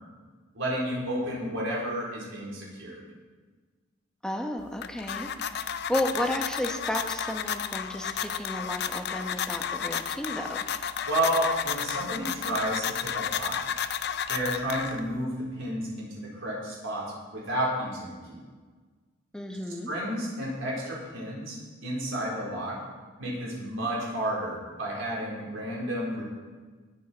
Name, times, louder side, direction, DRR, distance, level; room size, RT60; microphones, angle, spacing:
voice 1, 0.5-3.0 11.0-13.6 14.3-18.4 19.9-21.6 21.8-22.8 23.2-26.2, right 1 dB, 80° right, -4 dB, 4.3 m, -31 dB
voice 2, 4.2-10.6 19.3-19.9, left 1 dB, 5° left, 3 dB, 1.1 m, -33 dB
sound 1, 4.6-15.2, left 8 dB, 55° left, 0.6 m, -32 dB
19.0 x 8.3 x 4.5 m, 1.4 s
head